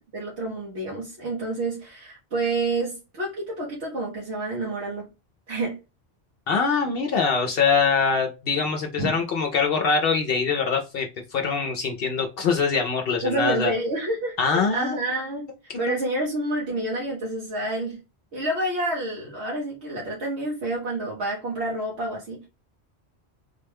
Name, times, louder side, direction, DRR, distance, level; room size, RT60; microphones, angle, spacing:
voice 1, 0.1-5.1 5.5-5.8 9.0-9.1 13.2-15.5 15.8-18.0 18.3-22.4, right 2 dB, 80° right, -4 dB, 1.3 m, -28 dB
voice 2, 6.5-13.7 14.4-15.0 15.7-15.9, left 5 dB, 65° left, 3 dB, 0.7 m, -23 dB
3.6 x 2.2 x 3.3 m, 0.28 s
omnidirectional pair, 1.1 m